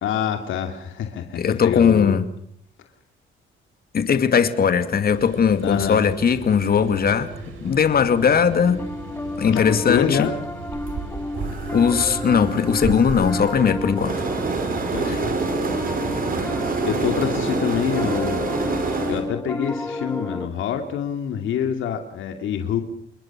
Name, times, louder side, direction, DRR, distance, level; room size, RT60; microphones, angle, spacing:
voice 1, 0.0-2.2 5.6-6.0 9.5-10.4 14.9-15.4 16.5-18.4 19.1-22.8, left 8 dB, 80° left, 5 dB, 2.6 m, -26 dB
voice 2, 1.4-2.2 3.9-7.3 7.6-8.8 9.4-10.3 11.7-14.1 15.1-15.2, left 7 dB, 50° left, 9 dB, 2.5 m, -19 dB
sound 1, 5.1-16.7, right 4 dB, 85° right, 6.6 m, -38 dB
Piano, 8.0-20.5, left 2 dB, 10° left, 1.5 m, -32 dB
sound 2, 10.7-19.3, right 4 dB, 45° right, 5.5 m, -27 dB
29.0 x 21.5 x 6.2 m, 0.66 s
cardioid pair, 90°, 20 cm